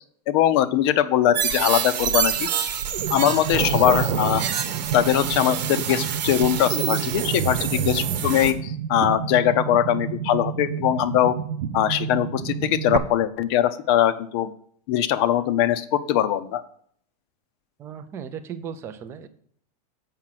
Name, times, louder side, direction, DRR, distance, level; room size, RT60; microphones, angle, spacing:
voice 1, 0.3-2.7 3.1-4.4 4.9-11.4 11.7-14.5 14.9-16.6, left 11 dB, 40° left, 14 dB, 0.5 m, -21 dB
sound 1, 1.3-8.5, right 8 dB, 85° right, 1.1 m, -26 dB
sound 2, 3.0-13.0, right 8 dB, 70° right, 0.8 m, -31 dB
voice 2, 17.8-19.3, right 7 dB, 10° right, 9 dB, 0.4 m, -36 dB
7.5 x 5.8 x 5.7 m, 0.63 s
supercardioid pair, 170°, 21 cm